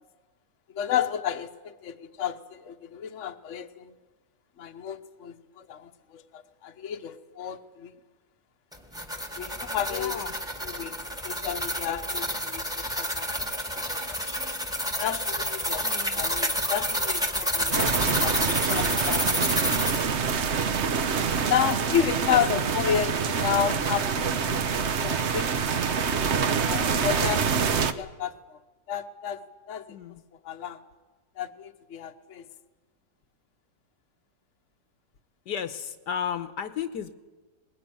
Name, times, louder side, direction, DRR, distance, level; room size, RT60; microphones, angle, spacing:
voice 1, 0.7-3.9 4.6-7.9 9.4-10.2 10.6-11.0 11.2-12.7 13.0-14.2 15.0-15.8 16.1-19.5 21.5-24.6 25.0-25.8 26.6-28.6 28.9-29.9 30.4-30.8 31.4-32.5, left 9 dB, 50° left, 6 dB, 1.2 m, -31 dB
sound 1, 8.7-20.1, equal, ahead, 1.5 m, -29 dB
voice 2, 9.9-10.3 15.8-16.3 22.3-22.4 29.9-30.2 35.4-37.1, left 8 dB, 70° left, 10 dB, 1.6 m, -34 dB
sound 2, 17.7-27.9, right 6 dB, 50° right, 0.9 m, -26 dB
20.5 x 19.0 x 9.4 m, 1.3 s
omnidirectional pair, 1.9 m